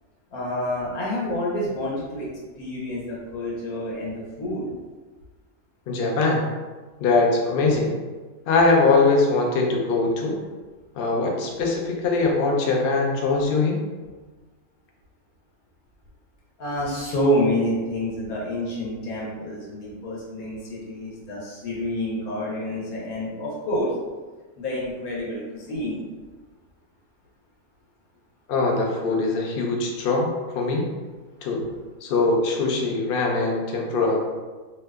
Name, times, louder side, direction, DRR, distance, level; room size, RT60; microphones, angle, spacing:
voice 1, 0.3-2.3 2.6-4.6 16.6-23.9 24.6-26.0, equal, 80° left, -5 dB, 1.2 m, -28 dB
voice 2, 5.9-6.4 7.0-7.9 8.5-10.4 11.0-13.8 28.5-30.9 31.4-31.6 32.0-34.3, left 3 dB, 65° left, 0 dB, 0.5 m, -22 dB
2.7 x 2.2 x 3.4 m, 1.3 s
omnidirectional pair, 1.5 m